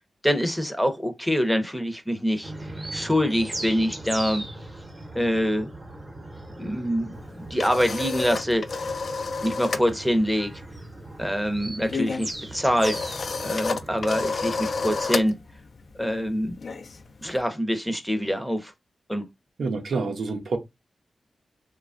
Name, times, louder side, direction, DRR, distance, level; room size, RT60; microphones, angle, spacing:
voice 1, 0.2-2.5 2.9-4.4 5.1-5.7 6.6-8.9 9.4-10.5 11.2-15.3 16.0-16.5 17.2-18.7 19.1-19.2, equal, ahead, 0.6 m, -25 dB
sound 1, 2.4-15.0, right 1 dB, 30° right, 0.8 m, -39 dB
sound 2, 7.2-9.9 10.2-10.5 10.7-17.4, left 4 dB, 65° left, 0.3 m, -31 dB
voice 2, 19.6-20.6, right 4 dB, 80° right, 0.6 m, -27 dB
3.0 x 2.2 x 2.4 m
cardioid pair, 60°, 0 cm